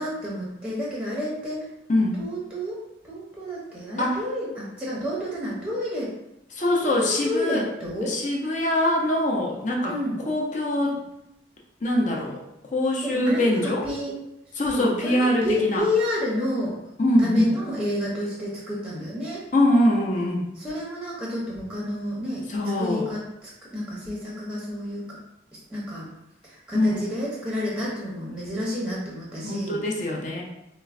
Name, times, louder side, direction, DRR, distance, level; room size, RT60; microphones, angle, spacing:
voice 1, 0.0-1.6 2.2-2.8 3.0-6.1 6.7-8.2 9.9-10.2 13.0-14.1 14.7-16.7 17.2-19.4 20.6-22.4 22.8-25.0 25.7-26.1 26.4-29.8, left 1 dB, 5° right, -5 dB, 0.7 m, -30 dB
voice 2, 6.5-7.6 8.1-9.9 10.3-11.0 11.8-12.4 12.7-13.9 14.6-15.8 17.0-17.5 19.5-20.5 22.5-23.1 26.7-27.0 29.4-30.4, left 1 dB, 40° left, -2 dB, 0.6 m, -23 dB
4.4 x 2.1 x 2.4 m, 0.89 s
head